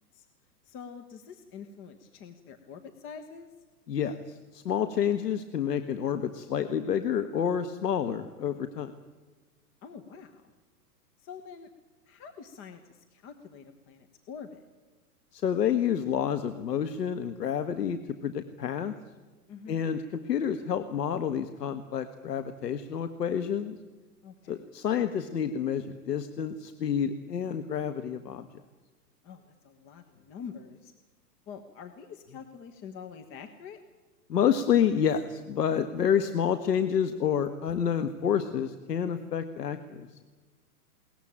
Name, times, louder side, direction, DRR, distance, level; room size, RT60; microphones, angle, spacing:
voice 1, 0.6-3.5 9.8-10.5 11.2-11.7 12.1-14.6 19.5-19.8 24.2-24.6 29.2-30.9 31.5-33.8, left 6 dB, 25° left, 7 dB, 1.4 m, -46 dB
voice 2, 3.9-8.9 15.3-18.9 19.7-23.8 24.5-28.5 34.3-40.1, left 8 dB, 80° left, 10 dB, 1.6 m, -29 dB
21.5 x 19.0 x 8.8 m, 1.3 s
hypercardioid pair, 135°, 48 cm